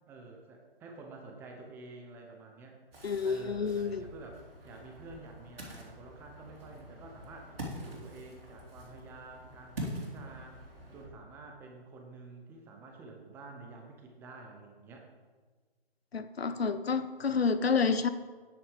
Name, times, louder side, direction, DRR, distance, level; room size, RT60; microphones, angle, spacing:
voice 1, 0.1-2.8 3.2-10.6 10.9-15.1, right 3 dB, 5° right, 2 dB, 0.6 m, -49 dB
Ocean, 2.9-11.1, equal, 65° right, 3.2 m, -45 dB
voice 2, 3.0-4.1 16.1-18.1, left 5 dB, 75° left, 11 dB, 0.8 m, -29 dB
9.3 x 8.4 x 4.9 m, 1.4 s
figure-of-eight pair, 135°, 31 cm